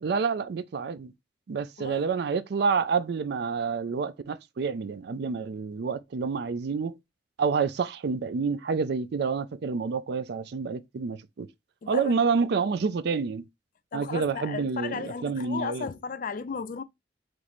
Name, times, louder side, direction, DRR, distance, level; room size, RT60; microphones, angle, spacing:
voice 1, 0.0-1.1 1.5-7.0 7.4-11.5 11.9-13.5 13.9-15.9, right 5 dB, 65° right, 0.4 m, -28 dB
voice 2, 11.8-12.3 13.9-16.8, left 5 dB, 50° left, 0.4 m, -35 dB
3.2 x 3.1 x 4.0 m
head